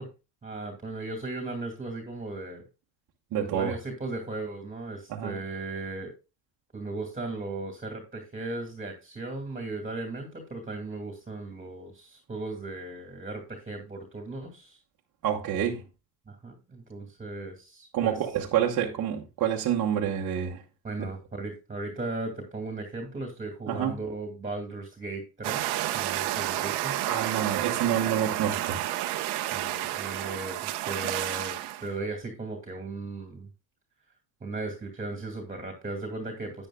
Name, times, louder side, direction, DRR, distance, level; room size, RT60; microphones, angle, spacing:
voice 1, 0.4-2.6 3.4-6.1 6.7-14.8 16.3-18.1 20.8-27.1 29.5-31.6 31.8-33.5 34.4-36.7, right 2 dB, 20° right, 2.3 m, -37 dB
voice 2, 3.3-3.7 5.1-5.4 15.2-15.8 17.9-20.6 23.7-23.9 26.3-26.4 27.0-28.8, right 9 dB, 45° right, 1.3 m, -28 dB
sound 1, 25.4-31.9, right 14 dB, 65° right, 1.0 m, -30 dB
10.5 x 9.2 x 2.3 m
supercardioid pair, 100°, 43 cm